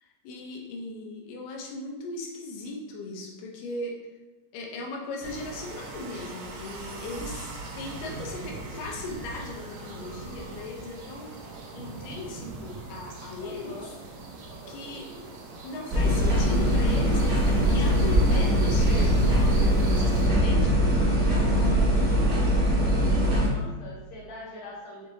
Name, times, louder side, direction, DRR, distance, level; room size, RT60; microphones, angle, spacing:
voice 1, 0.0-4.0 4.5-11.4 11.7-13.9 14.7-15.1 15.6-20.8, left 2 dB, 90° left, 0 dB, 2.4 m, -38 dB
sound 1, 5.2-20.3, right 3 dB, 80° right, 1.7 m, -41 dB
voice 2, 13.4-13.9 21.4-22.4 23.4-25.1, left 2 dB, 65° left, -5 dB, 2.0 m, -44 dB
sound 2, 15.9-23.5, equal, 50° right, 1.1 m, -22 dB
6.2 x 2.6 x 2.7 m, 1.1 s
omnidirectional pair, 3.8 m